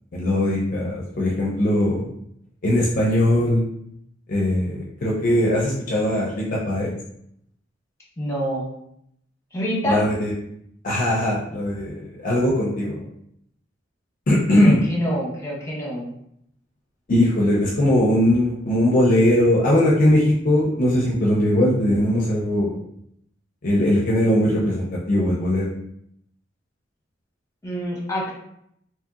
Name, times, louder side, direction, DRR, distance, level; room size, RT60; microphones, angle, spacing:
voice 1, 0.1-2.1 2.6-3.6 4.3-6.9 9.8-10.3 10.8-13.0 14.3-14.8 17.1-22.8 23.6-25.7, left 1 dB, 45° left, -4 dB, 0.5 m, -20 dB
voice 2, 8.2-8.7 9.5-10.0 14.6-16.1 27.6-28.3, equal, 15° left, -5 dB, 0.9 m, -26 dB
2.9 x 2.7 x 2.3 m, 0.73 s
head